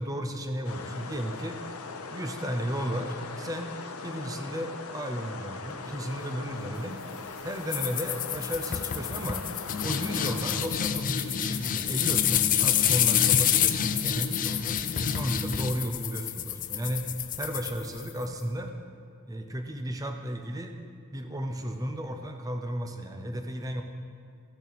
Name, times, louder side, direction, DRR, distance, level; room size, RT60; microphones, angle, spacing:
voice 1, 0.0-1.6 2.1-3.8 4.0-7.0 7.4-9.5 9.8-17.1 17.4-18.7 19.3-20.8 21.1-23.8, equal, 15° right, 5 dB, 0.6 m, -34 dB
sound 1, 0.6-10.6, left 4 dB, 75° left, 0.7 m, -40 dB
sound 2, 7.7-18.2, left 9 dB, 40° left, 0.4 m, -27 dB
14.0 x 6.8 x 4.1 m, 2.3 s
head